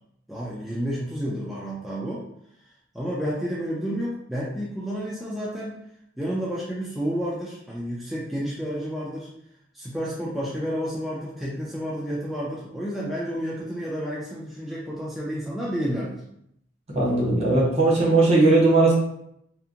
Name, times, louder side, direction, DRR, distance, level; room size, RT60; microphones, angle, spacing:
voice 1, 0.3-2.3 2.9-5.8 6.2-9.3 9.7-16.2, equal, ahead, -7 dB, 0.4 m, -30 dB
voice 2, 16.9-18.9, right 2 dB, 35° right, -4 dB, 0.7 m, -18 dB
2.7 x 2.4 x 2.5 m, 0.74 s
head